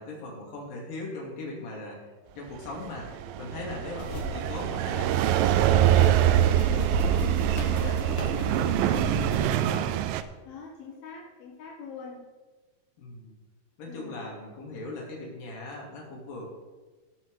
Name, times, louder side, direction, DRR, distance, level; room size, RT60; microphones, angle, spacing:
voice 1, 0.0-9.9 13.0-13.4 13.8-16.5, left 2 dB, 70° left, -3 dB, 4.2 m, -40 dB
sound 1, 2.7-10.2, right 12 dB, 80° right, 2.1 m, -24 dB
sound 2, 4.0-9.7, equal, 30° left, 2.7 m, -34 dB
voice 2, 4.1-4.6 10.4-12.2 13.9-14.2, left 5 dB, 90° left, -3 dB, 3.3 m, -44 dB
17.5 x 6.0 x 4.8 m, 1.3 s
omnidirectional pair, 4.2 m